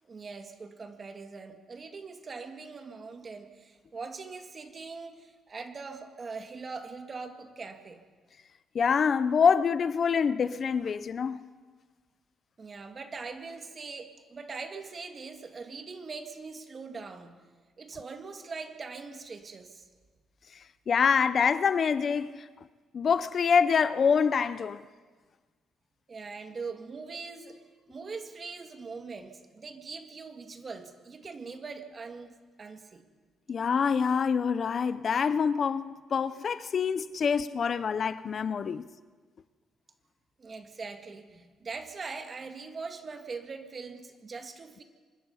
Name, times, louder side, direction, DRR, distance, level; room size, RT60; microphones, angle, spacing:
voice 1, 0.0-8.0 12.6-17.4 17.8-19.9 26.1-27.6 27.9-33.1 40.4-44.8, right 4 dB, 35° right, 2.0 m, -42 dB
voice 2, 8.7-11.4 20.9-22.5 22.9-24.8 33.5-38.8, left 6 dB, 45° left, 0.6 m, -26 dB
25.0 x 20.0 x 5.6 m
cardioid pair, 115°, 0 cm